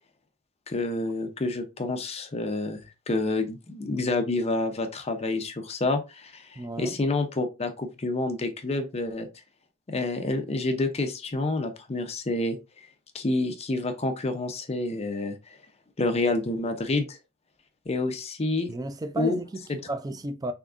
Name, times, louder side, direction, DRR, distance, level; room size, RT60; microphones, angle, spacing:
voice 1, 0.7-9.3 9.9-12.6 13.1-15.4 16.0-17.2 17.9-18.7 19.2-19.4, left 2 dB, 30° left, 0.6 m, -28 dB
voice 2, 6.6-7.0 18.7-20.5, right 2 dB, 20° right, 0.4 m, -33 dB
3.6 x 3.5 x 2.5 m
head